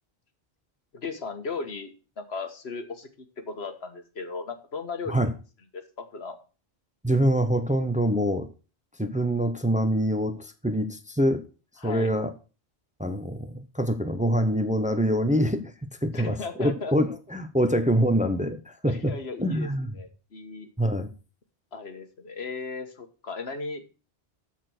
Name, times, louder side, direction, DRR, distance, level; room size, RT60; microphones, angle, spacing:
voice 1, 0.9-1.9 2.2-3.1 3.5-5.3 5.7-6.4 11.8-12.1 16.1-16.9 18.9-19.7 20.0-20.7 21.7-23.9, left 4 dB, 80° left, 1.7 m, -36 dB
voice 2, 7.0-8.5 9.0-11.4 11.8-12.3 13.0-15.7 16.0-19.1 19.4-20.0 20.8-21.1, equal, 10° right, 0.8 m, -25 dB
13.5 x 4.6 x 6.0 m
omnidirectional pair, 1.1 m